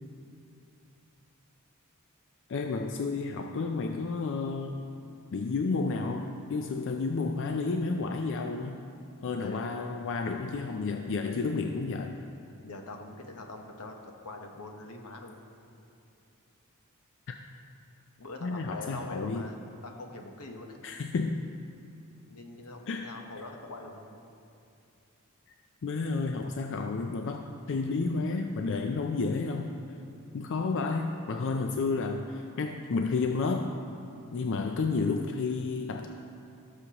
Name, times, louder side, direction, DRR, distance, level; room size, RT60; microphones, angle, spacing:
voice 1, 2.5-4.8 5.3-8.8 9.2-12.2 17.3-17.4 18.4-19.4 20.8-21.4 22.9-23.1 25.8-29.7 30.3-33.7 34.3-36.1, left 4 dB, 55° left, 4 dB, 0.4 m, -31 dB
voice 2, 12.6-15.4 18.2-20.8 22.3-24.1, left 2 dB, 85° left, 3 dB, 1.0 m, -43 dB
17.0 x 6.6 x 2.9 m, 2.6 s
head